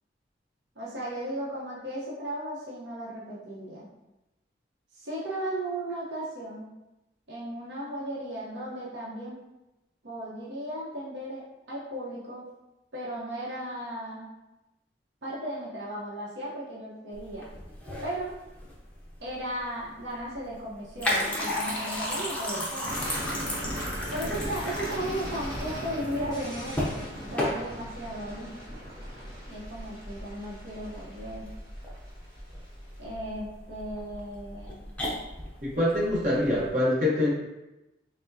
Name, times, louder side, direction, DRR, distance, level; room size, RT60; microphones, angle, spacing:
voice 1, 0.8-3.9 4.9-6.7 7.3-9.4 10.0-12.5 12.9-14.3 15.2-17.5 18.0-18.3 19.2-22.9 24.1-26.9 27.3-28.5 29.5-31.5 33.0-34.7, right 1 dB, 80° right, -7 dB, 0.8 m, -36 dB
sound 1, 17.1-36.7, left 1 dB, 10° left, 0.5 m, -35 dB
sound 2, 22.8-32.6, equal, 20° right, 1.0 m, -38 dB
voice 2, 35.6-37.3, left 1 dB, 45° right, -6 dB, 1.0 m, -25 dB
4.6 x 2.1 x 2.6 m, 0.98 s
head